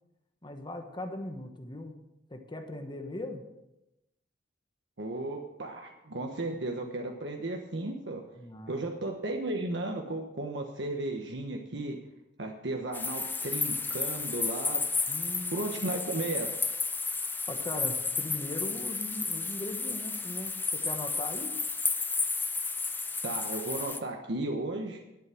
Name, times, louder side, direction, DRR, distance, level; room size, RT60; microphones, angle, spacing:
voice 1, 0.4-2.0 2.3-3.4 8.4-8.8 15.1-15.7 17.5-21.5, left 1 dB, 25° left, 5 dB, 1.2 m, -39 dB
voice 2, 5.0-8.2 8.7-12.0 12.4-14.8 15.5-16.7 23.2-25.0, right 2 dB, 80° right, 2 dB, 1.2 m, -34 dB
sound 1, 12.9-24.0, left 4 dB, 10° left, 0.6 m, -32 dB
11.5 x 8.4 x 6.3 m, 0.90 s
head